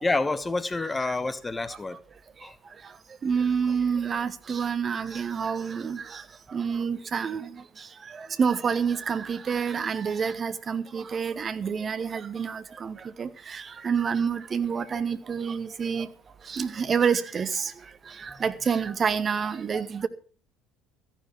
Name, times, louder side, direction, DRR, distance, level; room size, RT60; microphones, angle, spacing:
voice 1, 0.0-2.0 2.4-2.5, left 3 dB, 15° left, 1.1 m, -28 dB
voice 2, 3.2-16.1 16.4-17.7 18.0-20.1, right 6 dB, 30° right, 1.2 m, -28 dB
14.0 x 10.0 x 5.9 m
figure-of-eight pair, 60°, 0 cm